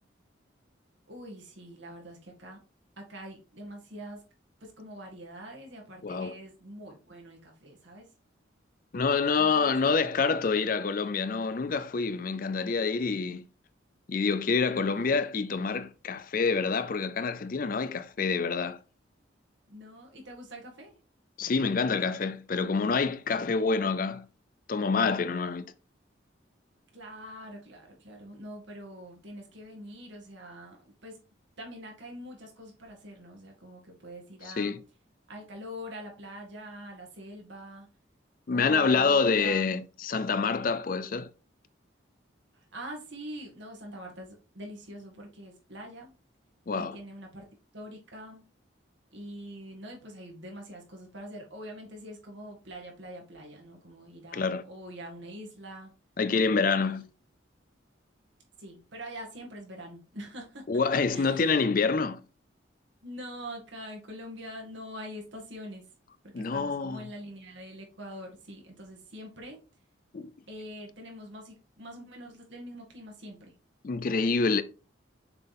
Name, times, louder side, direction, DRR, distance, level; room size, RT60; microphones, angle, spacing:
voice 1, 1.1-2.6 3.0-4.2 4.6-8.1 9.3-10.1 14.7-15.1 19.7-21.0 26.9-31.2 31.6-34.8 35.3-37.9 38.5-39.7 42.7-46.1 46.7-47.5 47.7-48.5 49.1-55.9 56.8-57.0 58.6-60.7 61.1-61.4 63.0-65.8 66.2-69.6 70.5-73.5, equal, 70° right, 2.0 m, -44 dB
voice 2, 6.0-6.3 8.9-13.4 14.1-18.8 21.4-24.3 24.7-25.7 34.4-34.8 38.5-41.3 46.7-47.0 54.3-54.6 56.2-57.1 60.7-62.2 66.3-67.0 70.1-70.3 73.8-74.6, left 4 dB, 45° left, 0.4 m, -27 dB
6.8 x 4.5 x 3.5 m
head